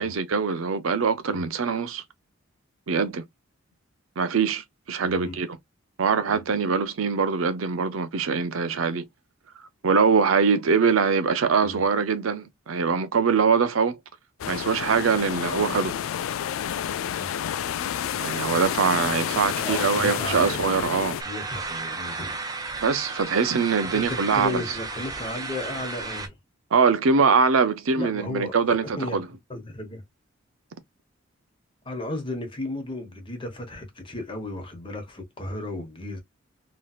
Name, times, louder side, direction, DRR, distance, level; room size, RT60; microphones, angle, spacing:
voice 1, 0.0-2.0 2.9-3.2 4.2-5.6 6.0-9.0 9.8-14.0 14.5-15.9 18.2-21.2 22.8-24.8 26.7-29.3, right 5 dB, 85° right, 0.6 m, -23 dB
voice 2, 5.0-5.4 6.3-6.6 11.6-11.9 17.0-17.3 19.5-20.8 21.2-22.4 23.9-26.3 27.9-29.2 29.5-30.0 31.9-36.2, left 2 dB, 25° left, 1.0 m, -34 dB
sound 1, 14.4-21.2, left 9 dB, 80° left, 0.3 m, -29 dB
sound 2, 21.2-26.3, right 3 dB, 20° right, 0.5 m, -34 dB
3.1 x 2.8 x 2.3 m
head